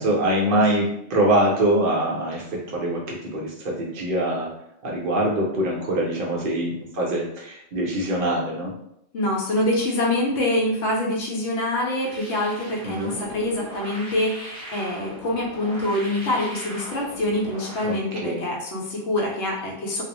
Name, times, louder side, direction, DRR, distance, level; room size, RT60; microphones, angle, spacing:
voice 1, 0.0-4.5 4.8-8.7 12.8-13.1 17.8-18.0 18.2-18.4, right 1 dB, 55° right, -3 dB, 0.7 m, -24 dB
voice 2, 9.1-20.0, left 1 dB, 70° left, -2 dB, 0.9 m, -25 dB
sound 1, 12.0-18.0, equal, 5° left, 0.5 m, -39 dB
2.4 x 2.0 x 2.8 m, 0.76 s
omnidirectional pair, 1.3 m